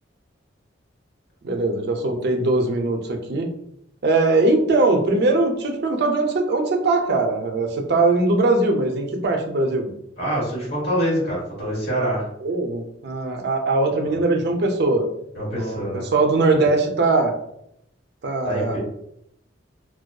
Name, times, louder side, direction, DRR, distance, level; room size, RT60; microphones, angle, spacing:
voice 1, 1.4-3.5 4.0-9.9 12.4-15.0 15.6-15.8 16.1-17.3 18.2-18.8, right 2 dB, 60° right, 3 dB, 0.4 m, -21 dB
voice 2, 10.2-12.2 14.0-14.3 15.3-16.1 16.5-16.7 18.4-18.8, equal, 55° left, -5 dB, 1.1 m, -25 dB
2.5 x 2.2 x 2.2 m, 0.75 s
head